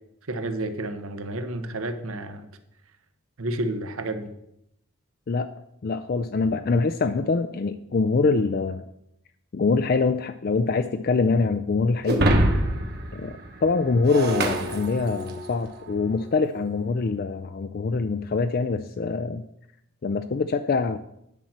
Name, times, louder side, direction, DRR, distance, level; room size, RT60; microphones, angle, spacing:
voice 1, 0.2-2.5 3.4-4.3, right 1 dB, 80° right, 9 dB, 0.9 m, -30 dB
voice 2, 5.8-8.8 9.5-12.3 13.1-19.4 20.0-21.0, left 4 dB, 45° left, 9 dB, 0.4 m, -24 dB
Shatter, 12.1-15.5, right 1 dB, 45° right, 1.3 m, -25 dB
10.0 x 4.3 x 7.3 m, 0.78 s
head